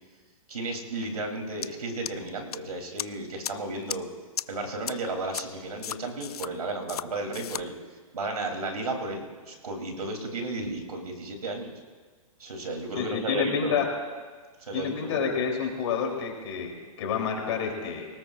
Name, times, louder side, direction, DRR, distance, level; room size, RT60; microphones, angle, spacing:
voice 1, 0.5-4.1 4.5-7.7 8.1-11.7 12.4-13.8 14.6-15.3, right 2 dB, 85° right, 2 dB, 3.3 m, -33 dB
sound 1, 1.6-1.7 2.1-2.6 3.0-3.1 3.4-3.5 3.9-4.0 4.4-4.5 4.9-5.0 5.3-5.4 5.8-6.5 6.9-7.0 7.3-7.6, left 9 dB, 85° left, 0.5 m, -33 dB
voice 2, 12.9-13.9 14.7-18.1, left 6 dB, 50° left, 1 dB, 3.3 m, -29 dB
25.0 x 18.5 x 2.5 m, 1.5 s
hypercardioid pair, 140°, 19 cm